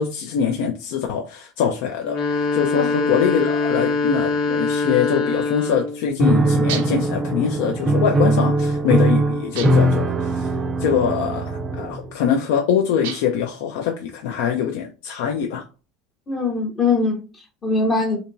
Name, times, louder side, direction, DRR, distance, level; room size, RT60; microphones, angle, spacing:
voice 1, 0.0-15.7, left 8 dB, 80° left, 0.5 m, -23 dB
sound 1, 2.0-6.0, left 3 dB, 60° left, 0.9 m, -23 dB
Piano, 6.2-12.1, right 2 dB, 25° right, 0.4 m, -20 dB
sound 2, 6.7-7.1 9.6-10.0 13.0-13.5, right 9 dB, 90° right, 0.6 m, -32 dB
voice 2, 16.3-18.2, left 3 dB, 25° left, 0.6 m, -22 dB
3.4 x 2.9 x 2.6 m
supercardioid pair, 135°, 0 cm